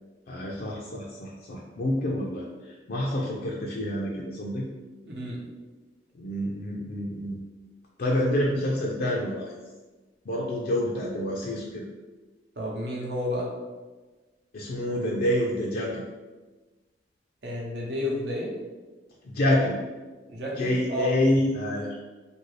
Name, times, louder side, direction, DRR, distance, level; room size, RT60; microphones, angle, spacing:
voice 1, 0.3-4.6 6.1-7.4 8.0-9.5 10.3-11.8 14.5-16.0 19.2-19.8 20.6-22.0, left 1 dB, 55° left, -3 dB, 0.4 m, -27 dB
voice 2, 5.1-5.4 12.6-13.5 17.4-18.5 20.3-21.1, left 1 dB, 75° right, -3 dB, 0.8 m, -31 dB
2.7 x 2.6 x 3.1 m, 1.3 s
head